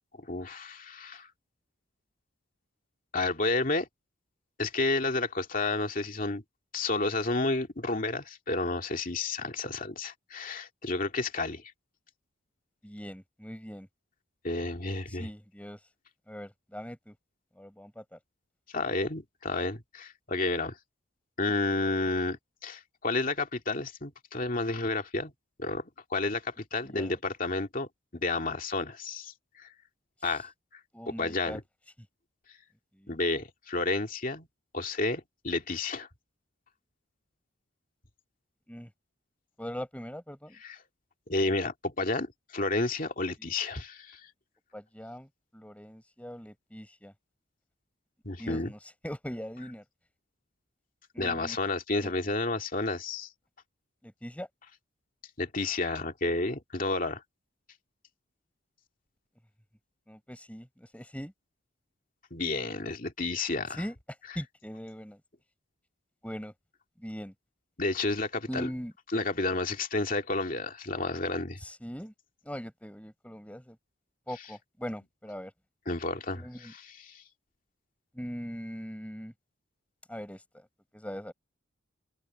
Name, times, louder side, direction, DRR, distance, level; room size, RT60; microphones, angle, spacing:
voice 1, 0.2-1.3 3.1-3.9 4.6-6.4 6.7-11.6 14.4-15.3 18.7-20.7 21.4-25.3 25.6-27.9 28.1-29.7 30.2-30.5 31.1-31.6 33.1-34.5 34.7-36.1 40.6-40.8 41.3-44.2 48.2-48.7 51.2-53.3 55.4-57.2 62.3-63.8 67.8-68.7 69.1-71.6 75.9-77.2, left 2 dB, 40° left, 2.4 m, -31 dB
voice 2, 12.8-13.9 15.1-15.8 16.3-17.1 17.6-18.2 26.8-27.2 30.9-31.6 32.9-33.2 38.7-38.9 39.6-40.6 43.4-43.5 44.7-47.1 48.4-48.8 49.0-49.8 51.1-51.6 52.0-52.1 54.0-54.5 60.1-61.3 63.7-64.0 64.3-65.2 66.2-66.5 67.0-67.3 68.5-68.9 71.6-72.1 72.4-73.8 74.3-75.5 76.3-76.7 78.1-79.3 80.1-80.7 80.9-81.3, equal, 5° left, 4.9 m, -41 dB
open air
head